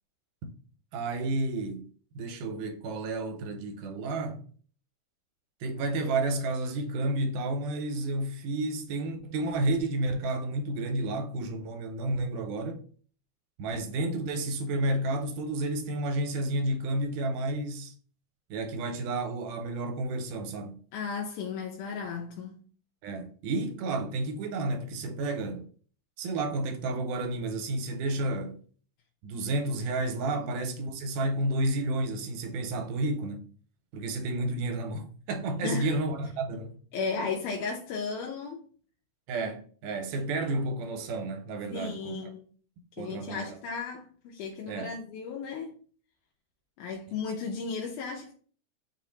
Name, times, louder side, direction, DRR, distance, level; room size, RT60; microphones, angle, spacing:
voice 1, 0.9-1.8 2.2-4.4 5.6-12.8 13.6-17.9 18.5-20.8 23.0-25.7 26.2-28.6 29.2-33.4 33.9-36.8 39.3-42.2 43.0-43.5 44.7-44.9, right 2 dB, 85° right, 2.2 m, -31 dB
voice 2, 20.9-22.6 30.4-30.5 35.6-36.0 36.9-38.7 41.7-42.4 43.0-45.7 46.8-48.4, left 5 dB, 85° left, 2.1 m, -35 dB
5.4 x 2.4 x 4.0 m
omnidirectional pair, 3.7 m